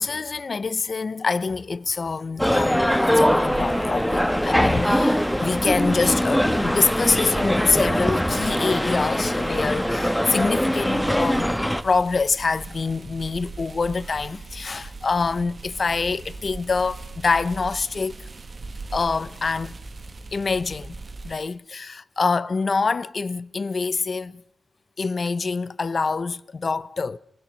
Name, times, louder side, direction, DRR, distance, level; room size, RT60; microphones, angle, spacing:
voice 1, 0.0-11.6 11.8-18.2 18.9-19.7 20.3-24.4 25.0-27.2, left 4 dB, 55° left, 1.0 m, -25 dB
sound 1, 2.4-11.8, equal, 5° left, 1.6 m, -22 dB
sound 2, 3.2-21.4, right 3 dB, 50° right, 1.7 m, -39 dB
29.5 x 19.0 x 6.5 m
wide cardioid pair, 85°, 0 cm